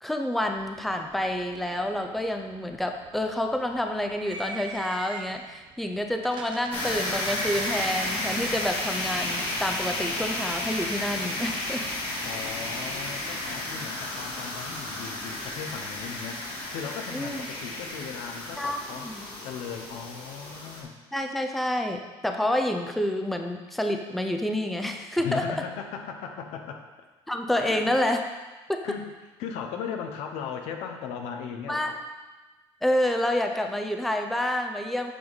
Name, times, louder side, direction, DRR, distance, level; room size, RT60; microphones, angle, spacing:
voice 1, 0.0-11.8 17.1-17.4 18.6-19.2 21.1-25.5 27.3-28.2 28.7-29.0 31.7-32.0 32.8-35.1, left 1 dB, ahead, 4 dB, 0.5 m, -28 dB
sound 1, 0.6-13.6, right 3 dB, 50° right, 0.9 m, -44 dB
sound 2, 6.7-20.8, left 1 dB, 65° left, 2.1 m, -33 dB
voice 2, 12.2-19.1 19.4-20.9 25.2-26.8 27.6-27.9 28.8-29.1 29.4-32.0, left 7 dB, 80° left, 4 dB, 0.9 m, -37 dB
8.6 x 5.3 x 4.0 m, 1.2 s
cardioid pair, 135°, 10 cm